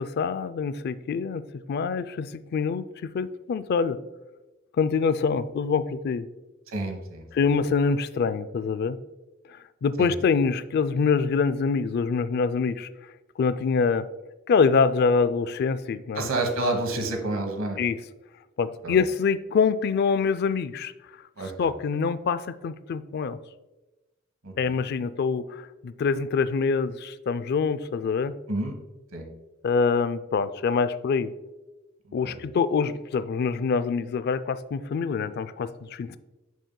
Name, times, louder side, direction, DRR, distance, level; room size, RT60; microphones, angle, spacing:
voice 1, 0.0-4.0 4.8-6.3 7.3-9.0 9.5-12.9 13.4-14.1 14.5-16.3 17.8-18.0 18.6-20.9 21.6-23.4 24.6-28.3 29.6-31.3 32.1-36.2, left 5 dB, 50° left, 14 dB, 0.3 m, -25 dB
voice 2, 6.7-7.3 10.0-10.1 16.1-17.8 18.8-19.0 21.4-21.7 24.4-24.7 28.5-28.8 29.1-29.3 32.1-32.4, right 2 dB, 70° right, 4 dB, 1.2 m, -29 dB
6.8 x 6.1 x 2.2 m, 1.1 s
head